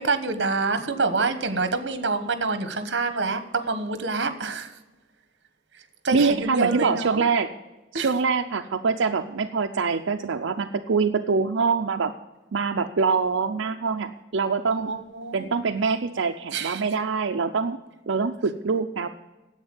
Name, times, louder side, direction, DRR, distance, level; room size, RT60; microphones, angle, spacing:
voice 1, 0.0-4.7 6.0-7.2 7.9-8.1 14.7-15.6 16.5-16.8, right 3 dB, 65° right, 10 dB, 1.2 m, -27 dB
voice 2, 6.1-7.5 7.9-12.1 12.5-14.9 15.3-17.8 18.1-19.1, right 4 dB, 90° right, 4 dB, 0.6 m, -24 dB
10.0 x 8.0 x 8.9 m, 1.1 s
head